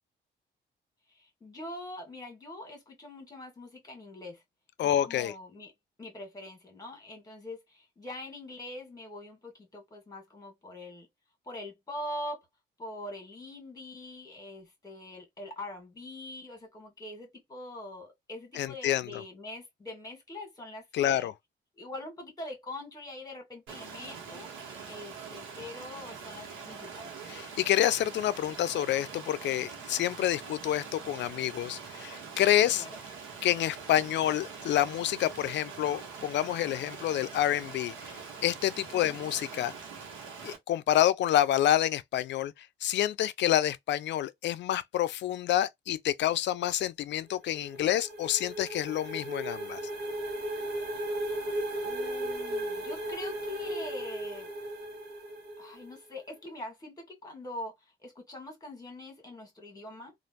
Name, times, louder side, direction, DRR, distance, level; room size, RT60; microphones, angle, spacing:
voice 1, 1.1-4.4 4.8-5.7 6.0-11.1 11.5-12.5 12.8-21.3 21.8-24.5 24.9-27.1 32.8-33.0 38.9-39.2 51.8-54.5 55.6-60.1, left 1 dB, 20° left, 1.8 m, -43 dB
voice 2, 4.8-5.3 18.6-19.2 20.9-21.3 27.3-32.9 33.4-39.7 40.4-49.8, left 12 dB, 65° left, 0.4 m, -28 dB
Stream, 23.7-40.6, right 5 dB, 90° right, 1.2 m, -44 dB
sound 1, 47.3-56.0, right 1 dB, 55° right, 1.2 m, -36 dB
3.1 x 2.5 x 2.8 m
cardioid pair, 90°, 20 cm